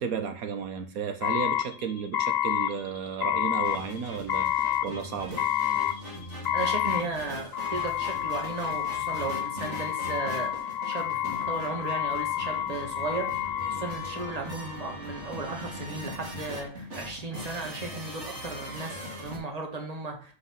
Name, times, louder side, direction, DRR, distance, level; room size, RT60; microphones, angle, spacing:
voice 1, 0.0-5.4 13.7-13.9, right 6 dB, 80° right, 7 dB, 1.3 m, -33 dB
sound 1, 1.2-14.8, left 10 dB, 55° left, 0.7 m, -29 dB
sound 2, 3.6-19.4, equal, 55° right, 2.3 m, -41 dB
voice 2, 6.5-20.3, right 3 dB, 25° right, 2 dB, 1.6 m, -35 dB
5.8 x 5.7 x 5.8 m, 0.42 s
omnidirectional pair, 1.5 m